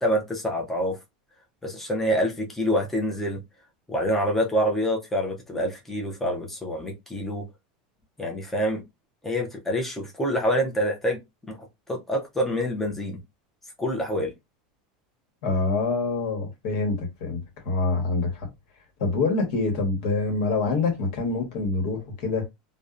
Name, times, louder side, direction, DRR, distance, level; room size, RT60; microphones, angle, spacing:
voice 1, 0.0-1.0 1.6-3.4 3.9-7.4 8.2-8.8 9.2-11.2 11.5-11.6 11.9-13.2 13.8-14.3, equal, 5° left, 0.6 m, -26 dB
voice 2, 15.4-17.4 17.6-18.5 19.0-22.5, left 3 dB, 65° left, 1.2 m, -25 dB
2.6 x 2.1 x 2.4 m
supercardioid pair, 140°, 4 cm